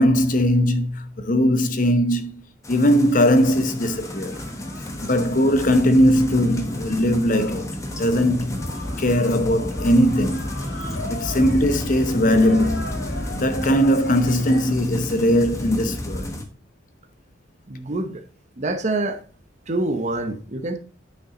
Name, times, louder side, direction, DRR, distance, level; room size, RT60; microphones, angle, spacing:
voice 1, 0.0-2.4 2.7-4.4 5.0-7.7 8.0-8.6 9.0-10.5 11.1-12.9 13.3-16.3, equal, 45° left, 0.8 m, -19 dB
sound 1, 2.6-16.4, left 1 dB, 15° left, 1.1 m, -31 dB
sound 2, 3.4-14.8, left 2 dB, 80° left, 3.1 m, -38 dB
voice 2, 17.7-18.2 18.6-19.2 19.7-20.8, right 2 dB, 35° right, 0.8 m, -26 dB
9.3 x 5.7 x 3.8 m
head